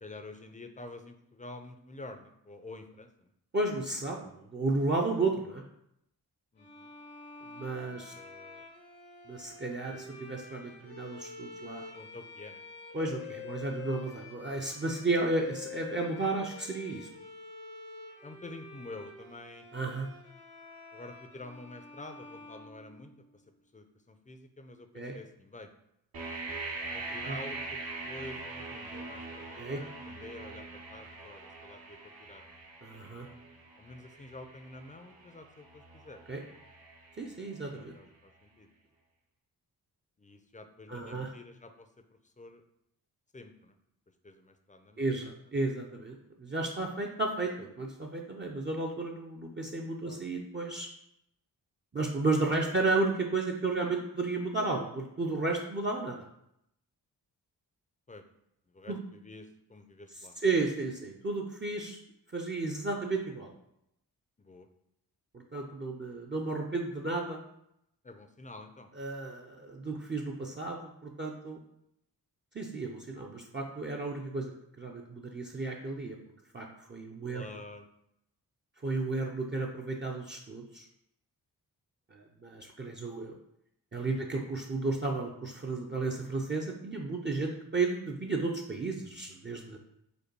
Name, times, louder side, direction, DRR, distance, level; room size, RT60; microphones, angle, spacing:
voice 1, 0.0-3.3 6.5-6.9 7.8-8.6 11.9-12.6 18.2-19.7 20.9-23.4 23.7-25.7 26.9-27.8 28.0-32.6 33.8-36.2 37.9-38.7 40.2-41.9 42.2-42.6 43.3-43.7 44.2-45.1 45.7-45.8 50.0-50.2 58.1-58.2 58.7-60.4 64.4-64.7 68.0-68.9 77.3-77.8 84.0-84.3, left 2 dB, 20° left, 7 dB, 0.5 m, -48 dB
voice 2, 3.5-5.6 7.5-8.1 9.3-11.8 12.9-17.1 19.7-20.1 24.9-25.2 27.2-27.4 29.6-29.8 32.8-33.3 36.3-36.4 37.2-37.9 40.9-41.3 45.0-50.9 51.9-56.2 58.9-59.0 60.4-62.0 62.3-63.5 65.3-67.4 69.0-71.6 72.5-74.5 74.8-76.2 76.5-77.5 78.8-80.9 82.1-83.4 83.9-89.8, right 3 dB, 30° right, -1 dB, 0.6 m, -33 dB
sound 1, 6.6-23.4, left 5 dB, 85° left, 1.4 m, -47 dB
sound 2, 26.1-37.9, right 3 dB, 65° right, 1.1 m, -43 dB
5.2 x 2.2 x 4.5 m, 0.79 s
cardioid pair, 55°, 40 cm